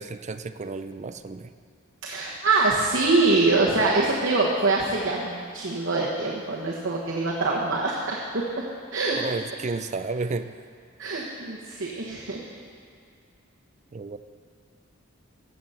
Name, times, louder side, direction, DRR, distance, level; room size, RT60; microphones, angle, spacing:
voice 1, 0.0-1.5 9.1-10.6 13.9-14.2, right 3 dB, 35° right, 11 dB, 0.4 m, -32 dB
voice 2, 2.0-8.4 8.9-9.2 11.0-12.4, right 3 dB, 65° right, -4 dB, 1.3 m, -24 dB
14.5 x 7.9 x 5.7 m, 2.3 s
head